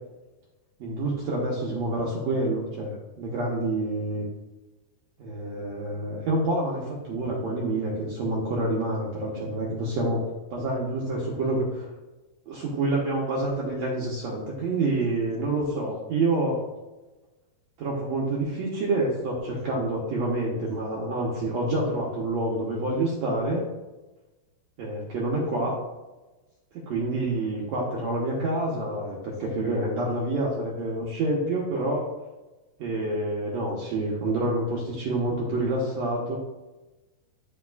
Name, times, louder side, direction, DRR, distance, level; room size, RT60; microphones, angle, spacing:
voice 1, 0.8-4.2 5.2-11.8 12.5-16.6 17.8-23.6 24.8-25.7 26.7-32.1 32.8-36.4, right 2 dB, 90° right, -4 dB, 1.5 m, -27 dB
12.0 x 4.1 x 2.4 m, 1.1 s
omnidirectional pair, 4.6 m